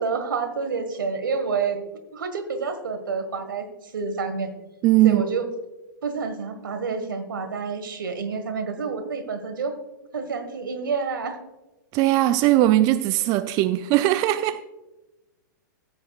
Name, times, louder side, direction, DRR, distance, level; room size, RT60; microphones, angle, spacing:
voice 1, 0.0-1.8 2.1-4.5 5.0-5.5 6.0-9.8 10.1-11.4, right 5 dB, 80° right, 1.5 m, -28 dB
voice 2, 4.8-5.2 11.9-14.6, right 15 dB, 35° right, 0.4 m, -19 dB
14.5 x 9.0 x 2.4 m
hypercardioid pair, 115°, 11 cm